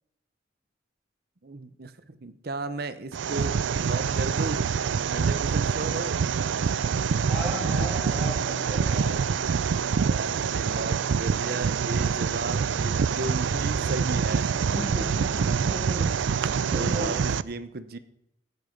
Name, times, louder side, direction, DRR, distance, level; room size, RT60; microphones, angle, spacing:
voice 1, 1.4-4.6 5.1-6.2 9.9-14.6 16.0-18.0, right 2 dB, 50° right, 12 dB, 0.8 m, -35 dB
sound 1, 3.1-17.4, right 6 dB, 70° right, 0.4 m, -26 dB
voice 2, 7.3-9.2 14.7-16.0 16.7-17.1, equal, 5° right, -11 dB, 4.9 m, -34 dB
17.5 x 8.2 x 5.3 m, 0.80 s
head